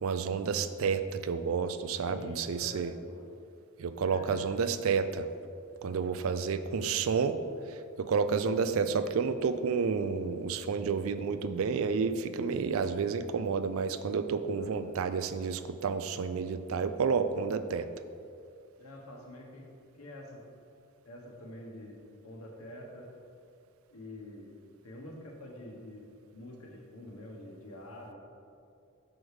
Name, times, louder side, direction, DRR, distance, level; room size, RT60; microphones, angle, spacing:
voice 1, 0.0-2.9 3.8-5.3 5.8-7.4 8.0-17.9, right 5 dB, 65° right, 11 dB, 0.4 m, -30 dB
voice 2, 2.0-3.2 4.1-4.6 5.8-6.2 14.5-14.7 18.8-19.6 19.9-20.4 21.0-22.0 22.2-23.1 23.9-24.5 24.8-26.0 26.3-28.1, left 1 dB, 75° left, 0 dB, 1.2 m, -47 dB
6.2 x 4.9 x 4.8 m, 2.4 s
head